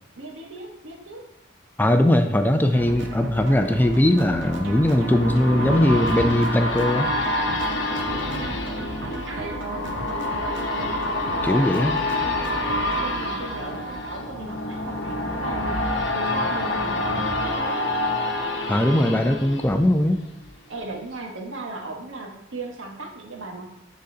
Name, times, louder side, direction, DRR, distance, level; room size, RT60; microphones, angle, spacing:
voice 1, 0.1-1.2 7.9-8.6 9.3-9.6 11.3-15.8 16.1-17.8 20.7-23.7, right 2 dB, 85° right, 0 dB, 1.3 m, -37 dB
voice 2, 1.8-7.1 10.0-10.1 11.4-12.0 18.7-20.2, left 1 dB, 10° left, 6 dB, 0.3 m, -20 dB
sound 1, 2.7-20.5 20.9-21.0, left 1 dB, 65° left, 0.9 m, -28 dB
sound 2, 2.7-13.1, right 2 dB, 70° right, 0.8 m, -35 dB
11.5 x 4.0 x 2.8 m, 0.80 s
head